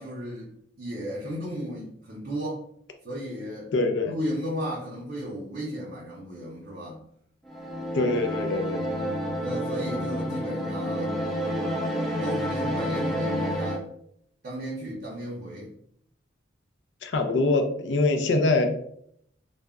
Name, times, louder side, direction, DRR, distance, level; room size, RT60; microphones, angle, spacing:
voice 1, 0.0-2.6 3.0-3.7 4.0-7.0 9.4-11.1 12.2-13.9 14.4-15.7, equal, 50° right, -5 dB, 0.6 m, -34 dB
voice 2, 3.7-4.1 7.9-8.8 17.0-18.7, left 2 dB, 65° left, 5 dB, 0.4 m, -24 dB
sound 1, 7.5-13.8, equal, ahead, 0.3 m, -29 dB
2.1 x 2.1 x 3.5 m, 0.69 s
head